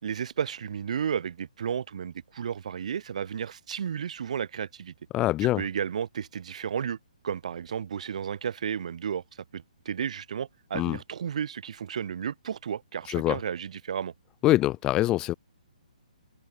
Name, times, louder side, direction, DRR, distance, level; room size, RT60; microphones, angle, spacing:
voice 1, 0.0-4.9 5.4-7.0 7.2-9.2 9.5-14.1, right 8 dB, 60° right, 3.8 m, -33 dB
voice 2, 5.1-5.6 10.7-11.0 13.1-13.4 14.4-15.3, left 16 dB, 15° left, 0.7 m, -24 dB
hypercardioid pair, 160°, 4 cm